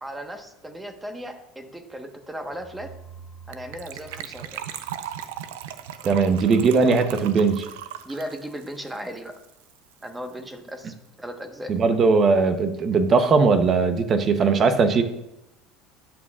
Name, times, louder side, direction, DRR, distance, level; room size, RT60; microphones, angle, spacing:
voice 1, 0.0-2.9 3.5-4.6 8.0-9.3 10.0-11.7, equal, 10° right, 5 dB, 1.3 m, -36 dB
sound 1, 2.5-5.4, right 6 dB, 45° left, 1.3 m, -47 dB
Gurgling / Trickle dribble / Fill (with liquid), 3.5-9.8 10.0-10.1 10.3-10.5 10.8-10.9, right 10 dB, 85° right, 0.6 m, -38 dB
voice 2, 6.0-7.7 11.7-15.0, right 4 dB, 40° right, 9 dB, 0.9 m, -19 dB
12.5 x 8.7 x 2.5 m, 0.86 s
supercardioid pair, 95°, 0 cm